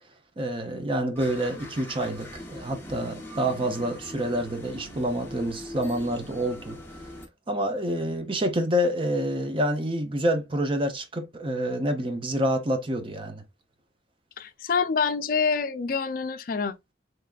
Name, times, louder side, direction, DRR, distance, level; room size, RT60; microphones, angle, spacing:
voice 1, 0.4-6.8 7.5-13.4, equal, 30° right, 0.6 m, -27 dB
sound 1, 1.2-7.3, left 1 dB, 15° left, 0.8 m, -41 dB
voice 2, 14.4-16.9, left 5 dB, 50° left, 0.4 m, -27 dB
3.6 x 3.2 x 2.3 m
head